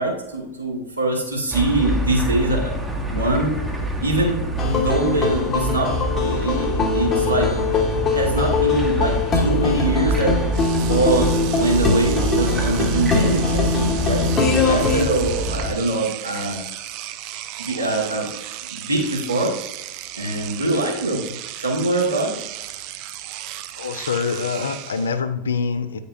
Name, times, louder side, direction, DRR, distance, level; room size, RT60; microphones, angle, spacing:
voice 1, 0.0-2.7 3.0-3.5 4.0-7.5 8.1-10.3 10.8-14.2 14.7-16.6 17.6-18.3 18.7-19.5 20.1-21.3 21.6-22.4, right 2 dB, 80° right, -2 dB, 1.6 m, -23 dB
sound 1, 1.5-15.7, right 1 dB, 10° right, 0.9 m, -26 dB
sound 2, 4.6-15.0, left 4 dB, 25° left, 1.1 m, -22 dB
Engine / Domestic sounds home sounds, 10.1-10.2 10.5-25.2, right 13 dB, 45° right, 0.4 m, -35 dB
voice 2, 23.8-26.0, left 5 dB, 70° left, 9 dB, 0.6 m, -25 dB
8.8 x 5.3 x 2.6 m, 0.96 s
figure-of-eight pair, 90°, 0 cm